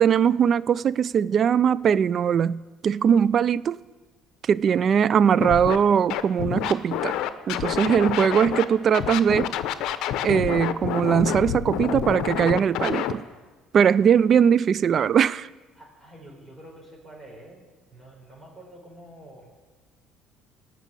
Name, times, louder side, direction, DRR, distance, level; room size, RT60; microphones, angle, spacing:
voice 1, 0.0-3.8 4.5-7.2 7.5-9.5 10.2-13.2 13.7-15.5, right 7 dB, 45° right, 0.3 m, -20 dB
Scratching (performance technique), 5.4-5.8 6.1-8.6 8.9-13.1, left 11 dB, 70° left, 0.8 m, -28 dB
voice 2, 15.7-17.6 17.9-19.6, right 1 dB, 10° right, 4.7 m, -47 dB
18.5 x 6.2 x 8.3 m
supercardioid pair, 95°, 0 cm